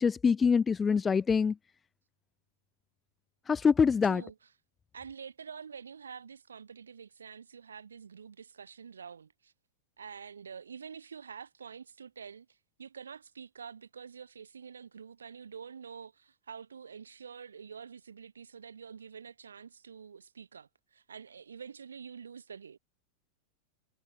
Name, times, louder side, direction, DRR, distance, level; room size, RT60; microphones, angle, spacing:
voice 1, 0.0-1.5 3.5-4.2, left 6 dB, 15° left, 0.3 m, -25 dB
voice 2, 4.0-4.5 4.9-9.5 10.0-22.8, right 6 dB, 70° right, 5.0 m, -47 dB
figure-of-eight pair, 90°, 0 cm